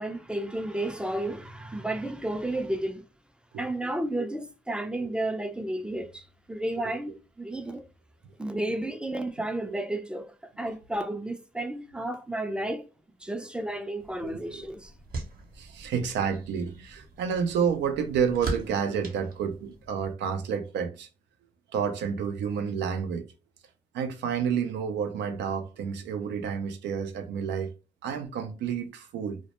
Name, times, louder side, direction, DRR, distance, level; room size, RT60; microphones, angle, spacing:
voice 1, 0.0-3.0 3.6-7.8 8.4-10.2 10.6-12.8 13.2-14.9, right 1 dB, 5° right, 0.4 m, -32 dB
voice 2, 4.9-5.5 6.8-6.9 9.6-9.8 14.2-14.7 15.6-21.1 21.7-23.3 23.9-27.7 28.0-29.4, right 7 dB, 80° right, 0.4 m, -30 dB
sound 1, 14.0-20.1, right 2 dB, 55° right, 0.8 m, -41 dB
2.1 x 2.0 x 2.9 m
supercardioid pair, 50°, 18 cm